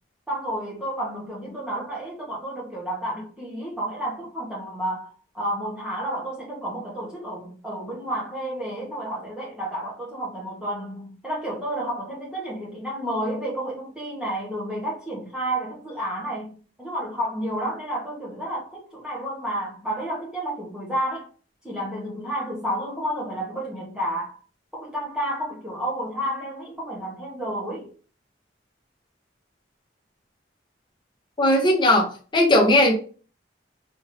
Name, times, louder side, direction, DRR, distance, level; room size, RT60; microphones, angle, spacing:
voice 1, 0.3-21.3 21.6-24.4 24.7-27.9, right 1 dB, 5° right, 0.9 m, -31 dB
voice 2, 31.4-32.9, left 1 dB, 25° left, 0.9 m, -18 dB
4.4 x 2.6 x 3.0 m
head